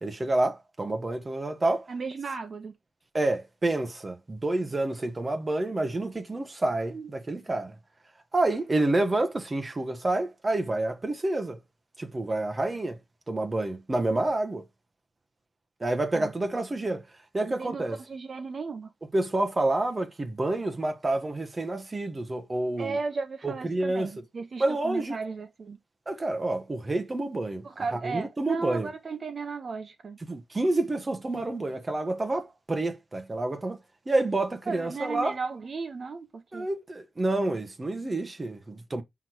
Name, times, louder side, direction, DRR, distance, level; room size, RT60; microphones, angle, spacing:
voice 1, 0.0-1.9 3.1-7.7 8.3-11.6 12.0-13.0 13.3-14.7 15.8-17.0 17.3-18.0 19.1-23.0 23.4-24.1 24.6-25.2 26.1-27.7 28.0-28.9 30.3-33.8 34.1-35.4 36.5-39.0, right 2 dB, 20° right, 1.2 m, -28 dB
voice 2, 1.9-2.7 6.9-7.1 16.1-16.3 17.5-18.9 22.8-25.8 27.6-30.2 34.7-36.7, right 4 dB, 40° right, 0.9 m, -35 dB
6.3 x 6.0 x 4.6 m
wide cardioid pair, 155°, 0 cm